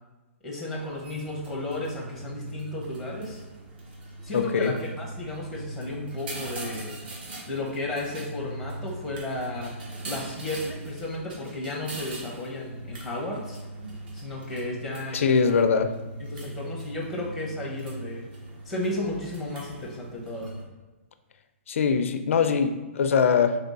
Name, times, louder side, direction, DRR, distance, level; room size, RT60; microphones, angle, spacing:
voice 1, 0.4-3.4 4.2-6.9 7.5-9.7 10.0-13.6 14.1-15.3 16.2-18.2 18.6-20.5, left 1 dB, ahead, -4 dB, 0.7 m, -33 dB
sound 1, 0.7-20.6, right 1 dB, 45° right, 1.0 m, -40 dB
voice 2, 4.3-4.7 15.1-15.9 21.7-23.6, left 6 dB, 75° left, 8 dB, 0.4 m, -22 dB
3.4 x 3.4 x 4.0 m, 1.2 s
hypercardioid pair, 165°, 7 cm